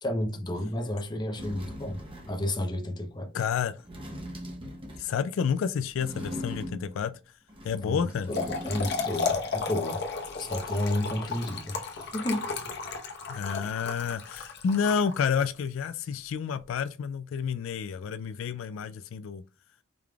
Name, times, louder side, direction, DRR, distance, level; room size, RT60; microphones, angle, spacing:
voice 1, 0.0-3.3 7.8-10.0 10.4-12.5, left 1 dB, 20° left, 0.8 m, -32 dB
sound 1, 0.9-1.0 1.3-2.5 3.8-5.2 6.0-7.1 7.5-9.2 9.4-9.5, equal, 25° right, 1.1 m, -40 dB
voice 2, 3.3-3.8 5.0-7.1 7.6-8.3 13.3-19.4, left 6 dB, 75° left, 0.3 m, -30 dB
Trickle dribble / Fill (with liquid), 8.1-15.6, left 4 dB, 55° left, 1.1 m, -34 dB
4.9 x 3.7 x 2.3 m
head